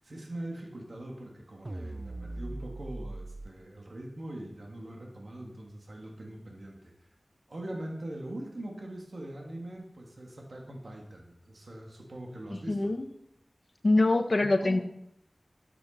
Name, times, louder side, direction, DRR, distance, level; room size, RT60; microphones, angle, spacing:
voice 1, 0.0-6.9 7.5-12.9 14.6-14.8, right 1 dB, 65° right, 0 dB, 2.9 m, -42 dB
sound 1, 1.6-3.5, right 2 dB, 35° right, 0.8 m, -39 dB
voice 2, 12.5-13.0 13.8-14.8, left 2 dB, 50° left, 6 dB, 1.3 m, -24 dB
12.5 x 9.6 x 5.5 m, 0.76 s
wide cardioid pair, 65°, 0 cm